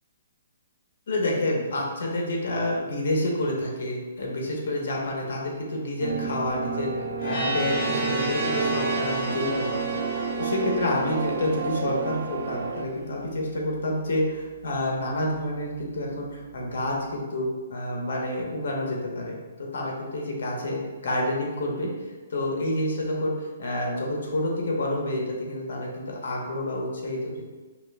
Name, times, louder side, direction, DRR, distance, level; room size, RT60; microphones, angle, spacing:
voice 1, 1.1-19.4 19.7-21.9 22.3-27.4, left 1 dB, 65° left, -1 dB, 1.0 m, -29 dB
sound 1, 6.0-12.9, right 5 dB, 60° right, 0.3 m, -30 dB
sound 2, 7.2-12.0, right 1 dB, 5° left, 1.1 m, -31 dB
5.8 x 2.4 x 2.2 m, 1.3 s
hypercardioid pair, 170°, 0 cm